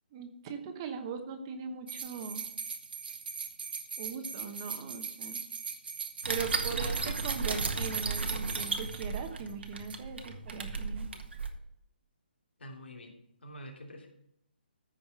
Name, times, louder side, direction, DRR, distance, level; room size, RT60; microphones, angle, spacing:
voice 1, 0.1-2.4 4.0-5.4 6.2-11.1, right 5 dB, 25° right, 6 dB, 1.1 m, -40 dB
sound 1, 1.9-9.5 9.8-9.9, right 6 dB, 60° right, 1.2 m, -40 dB
sound 2, 6.2-11.5, right 4 dB, 80° right, 1.6 m, -34 dB
voice 2, 12.6-13.1 13.4-14.1, equal, 80° left, 0 dB, 3.2 m, -46 dB
14.0 x 5.2 x 6.0 m, 0.79 s
hypercardioid pair, 160°, 6 cm